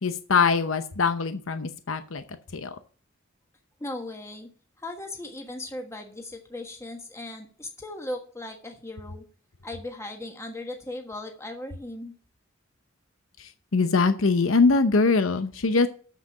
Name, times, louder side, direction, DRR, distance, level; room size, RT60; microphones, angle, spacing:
voice 1, 0.0-2.2 2.5-2.8 13.4-15.9, left 4 dB, 80° left, 10 dB, 0.8 m, -23 dB
voice 2, 3.8-4.5 4.8-9.2 9.6-12.1, left 1 dB, 15° left, 3 dB, 1.4 m, -37 dB
7.6 x 6.7 x 7.6 m, 0.41 s
head